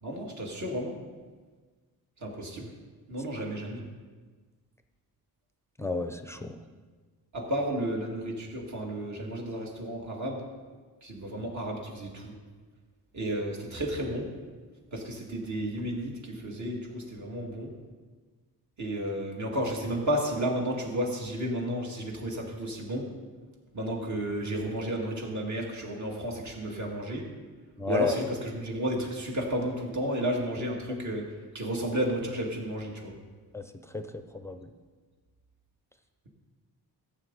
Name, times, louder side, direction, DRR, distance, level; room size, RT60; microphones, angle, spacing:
voice 1, 0.0-1.0 2.2-2.7 3.1-3.8 7.3-10.5 11.0-12.3 13.1-14.3 14.9-17.7 18.8-23.1 23.7-27.3 27.9-33.1, equal, 45° right, 0 dB, 2.3 m, -32 dB
voice 2, 5.8-6.6 27.8-28.1 33.5-33.6 33.9-34.7, left 3 dB, 5° left, 6 dB, 0.6 m, -32 dB
14.0 x 8.6 x 4.1 m, 1.4 s
cardioid pair, 110°, 39 cm